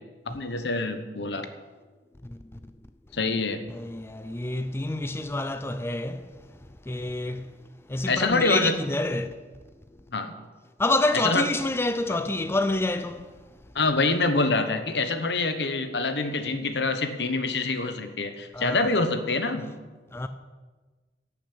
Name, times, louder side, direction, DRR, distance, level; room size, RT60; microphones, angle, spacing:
voice 1, 0.3-1.5 3.1-3.6 8.1-8.8 10.1-10.3 11.1-11.4 12.1-12.2 13.7-19.7, left 3 dB, 70° left, 1.2 m, -26 dB
voice 2, 3.7-6.3 6.9-7.5 7.9-9.4 10.8-13.3 18.5-18.8 20.1-20.3, left 2 dB, 15° left, 0.5 m, -27 dB
11.5 x 6.6 x 8.7 m
head